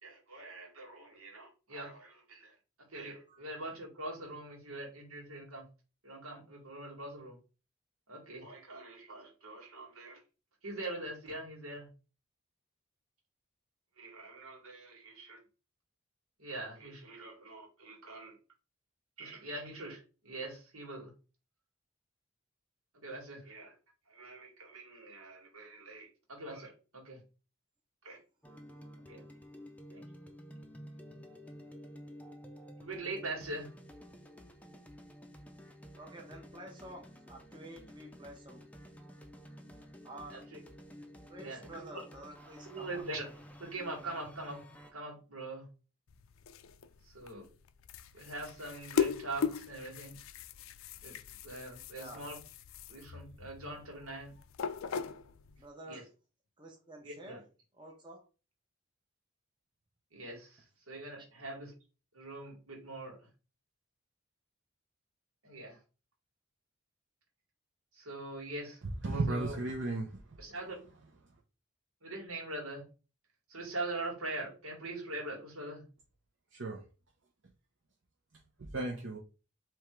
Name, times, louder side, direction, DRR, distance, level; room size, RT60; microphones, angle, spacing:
voice 1, 0.0-2.5 2.9-5.7 6.0-7.4 8.1-10.2 10.6-11.9 14.0-15.4 16.4-18.4 19.2-21.1 22.9-23.7 24.1-27.2 28.0-28.2 29.1-29.3 29.9-30.1 32.8-33.7 40.3-40.6 41.4-42.0 42.6-43.3 43.6-44.6 44.9-45.7 47.0-47.5 48.1-50.2 51.0-51.1 51.4-52.4 52.9-54.3 55.9-56.0 57.0-57.4 60.1-61.7 62.1-63.3 65.4-65.8 67.9-68.8 69.3-69.6 70.4-70.8 72.0-72.9 73.5-75.8, right 2 dB, 85° right, 2.0 m, -43 dB
sound 1, 28.4-44.9, equal, 5° left, 0.5 m, -52 dB
voice 2, 36.0-38.7 40.0-40.5 41.3-43.0 51.9-52.3 55.6-56.1 56.6-57.4 57.8-58.3, right 1 dB, 20° right, 0.8 m, -50 dB
sound 2, 46.1-55.7, left 6 dB, 75° left, 0.4 m, -39 dB
voice 3, 68.8-70.2 76.5-76.8 78.7-79.2, right 2 dB, 60° right, 0.8 m, -34 dB
3.6 x 3.1 x 4.6 m
head